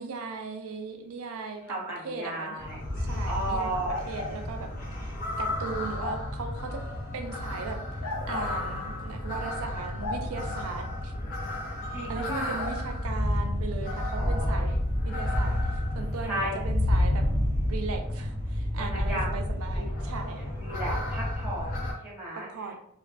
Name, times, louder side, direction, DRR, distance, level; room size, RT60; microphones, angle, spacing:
voice 1, 0.0-2.6 3.0-4.7 5.0-6.8 7.1-11.1 12.1-14.7 15.0-17.3 17.6-20.5 22.3-22.7, right 4 dB, 70° right, 4 dB, 0.4 m, -38 dB
voice 2, 1.7-2.8 3.0-4.0 11.9-12.6 14.1-14.7 16.2-16.5 18.8-19.4 19.7-19.9 20.4-22.7, right 1 dB, 10° right, -6 dB, 0.9 m, -35 dB
sound 1, 2.6-21.9, left 1 dB, 40° left, 0.7 m, -30 dB
sound 2, 3.8-4.4 6.0-6.2 8.0-8.6 10.0-10.2 12.5-12.8, left 3 dB, 75° left, 0.6 m, -34 dB
2.4 x 2.2 x 2.4 m, 0.75 s
head